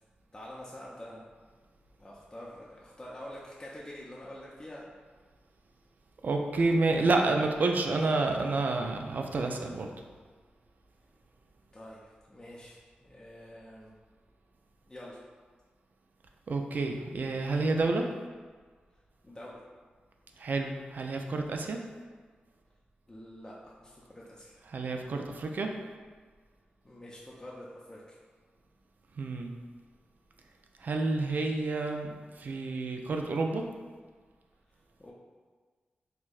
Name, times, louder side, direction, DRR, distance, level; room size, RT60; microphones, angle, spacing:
voice 1, 0.3-1.2 2.0-4.9 11.7-13.9 14.9-15.2 19.2-19.6 23.1-24.6 26.8-28.2 35.0-35.1, left 1 dB, 20° left, -5 dB, 0.5 m, -46 dB
voice 2, 6.2-9.9 16.5-18.1 20.4-21.8 24.7-25.7 29.2-29.5 30.8-33.7, right 3 dB, 60° right, 3 dB, 0.3 m, -29 dB
4.3 x 2.1 x 2.3 m, 1.5 s
cardioid pair, 55°, 3 cm